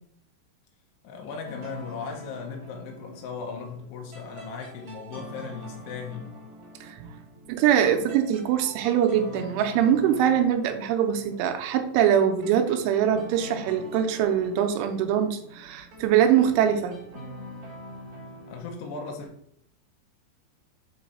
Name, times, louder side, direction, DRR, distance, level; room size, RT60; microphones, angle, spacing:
voice 1, 1.0-6.4 18.5-19.3, left 5 dB, 80° left, 1 dB, 2.5 m, -37 dB
sound 1, 1.4-18.6, equal, 45° right, 2.9 m, -44 dB
voice 2, 7.5-17.0, right 9 dB, 90° right, 5 dB, 3.1 m, -23 dB
7.3 x 3.2 x 4.1 m, 0.69 s
omnidirectional pair, 5.5 m